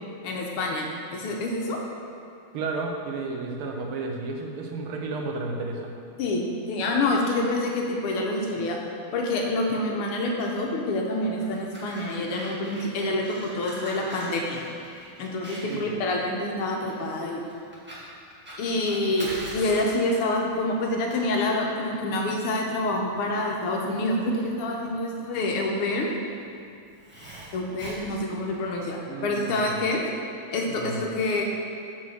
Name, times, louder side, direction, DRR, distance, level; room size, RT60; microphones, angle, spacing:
voice 1, 0.2-0.9 1.1-1.8 6.2-8.8 9.1-14.6 15.2-17.4 18.6-19.3 19.5-26.1 27.5-30.0 30.5-31.4, left 2 dB, 85° left, 0 dB, 1.8 m, -27 dB
voice 2, 2.5-5.9 15.6-15.9 29.1-30.0 30.7-31.0, right 3 dB, 80° right, 1 dB, 1.7 m, -32 dB
Fire, 11.2-28.9, right 1 dB, 5° right, 1.5 m, -44 dB
7.2 x 4.6 x 6.3 m, 2.4 s
omnidirectional pair, 2.4 m